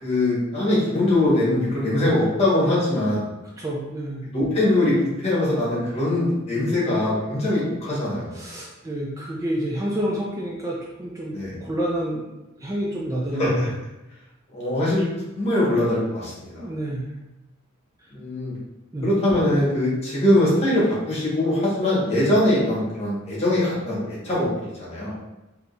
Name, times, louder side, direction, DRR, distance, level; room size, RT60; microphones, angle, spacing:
voice 1, 0.0-3.2 4.2-8.4 11.3-11.5 13.3-13.7 14.5-16.7 18.1-18.6 19.0-25.1, left 1 dB, 30° left, -7 dB, 1.5 m, -22 dB
voice 2, 3.6-4.2 8.3-11.4 11.6-12.3 12.6-13.6 16.6-17.0 18.9-19.1, right 1 dB, 15° right, -4 dB, 0.4 m, -28 dB
3.7 x 2.9 x 2.6 m, 0.99 s
head